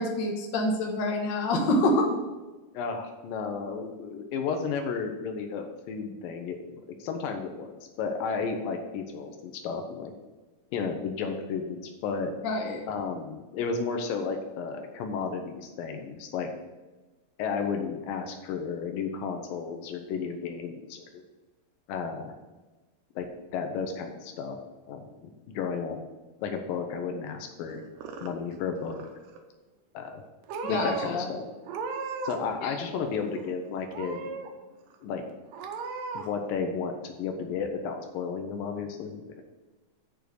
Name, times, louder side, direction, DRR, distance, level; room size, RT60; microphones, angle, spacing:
voice 1, 0.0-2.2 12.4-12.9 30.6-31.3 32.6-32.7, left 1 dB, 60° left, 2 dB, 1.2 m, -27 dB
voice 2, 2.7-10.1 10.7-12.3 12.9-16.5 17.4-21.2 21.9-22.3 23.2-24.6 24.9-26.0 26.4-27.8 28.2-29.1 29.9-30.2 30.7-31.4 32.2-34.3 35.0-35.2 36.1-39.4, left 5 dB, 90° left, 4 dB, 2.6 m, -33 dB
Purr / Meow, 27.7-28.6 28.8-29.4 30.1-30.2 30.5-31.1 31.6-32.5 32.8-33.5 33.9-34.5 34.9-35.0 35.5-36.3, right 5 dB, 75° right, 2.5 m, -37 dB
7.1 x 6.3 x 6.8 m, 1.2 s
omnidirectional pair, 4.0 m